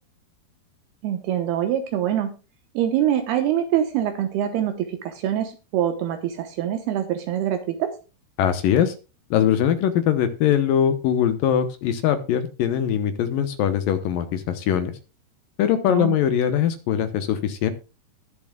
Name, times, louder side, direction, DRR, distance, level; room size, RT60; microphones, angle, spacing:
voice 1, 1.0-2.3 2.7-7.9 15.9-16.2, right 10 dB, 75° right, 7 dB, 3.0 m, -24 dB
voice 2, 8.4-8.9 9.3-14.9 15.6-17.7, left 9 dB, 70° left, 10 dB, 2.3 m, -21 dB
20.5 x 7.1 x 2.3 m, 0.32 s
omnidirectional pair, 4.8 m